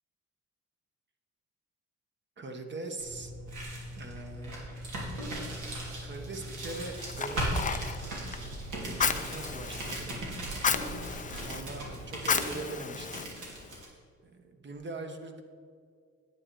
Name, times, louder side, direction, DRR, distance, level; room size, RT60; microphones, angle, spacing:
voice 1, 2.4-3.3 4.0-4.6 6.0-7.9 8.8-10.5 11.2-13.3 14.2-15.4, right 3 dB, 35° right, 5 dB, 1.2 m, -42 dB
sound 1, 3.0-13.9, right 1 dB, 75° right, 2.9 m, -38 dB
Fire, 6.6-13.8, left 6 dB, 25° left, 0.5 m, -34 dB
9.7 x 9.0 x 4.6 m, 2.2 s
cardioid pair, 90°, 30 cm